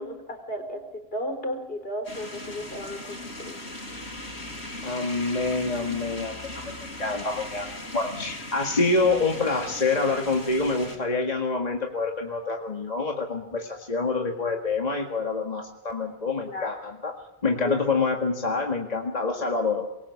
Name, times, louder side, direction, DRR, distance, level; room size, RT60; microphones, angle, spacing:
voice 1, 0.0-3.6 16.5-16.7 17.6-17.8, left 1 dB, 65° left, 5 dB, 4.6 m, -34 dB
sound 1, 2.0-11.0, left 1 dB, 90° left, 5.2 m, -38 dB
voice 2, 4.8-7.7 7.9-17.2 17.4-19.9, left 3 dB, 40° left, 1 dB, 2.1 m, -27 dB
25.0 x 22.5 x 7.2 m, 0.93 s
omnidirectional pair, 1.1 m